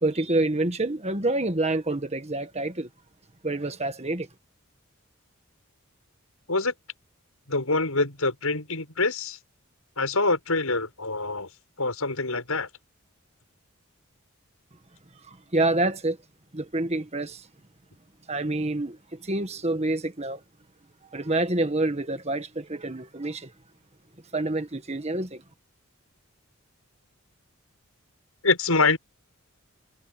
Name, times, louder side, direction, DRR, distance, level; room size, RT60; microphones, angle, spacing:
voice 1, 0.0-2.9 3.4-4.3 15.3-16.2 16.5-17.4 18.3-19.0 19.2-20.4 21.1-23.5 24.3-25.4, right 2 dB, 30° right, 1.7 m, -27 dB
voice 2, 7.5-9.4 10.0-11.5 11.8-12.7 28.4-29.0, left 3 dB, 85° left, 6.9 m, -25 dB
head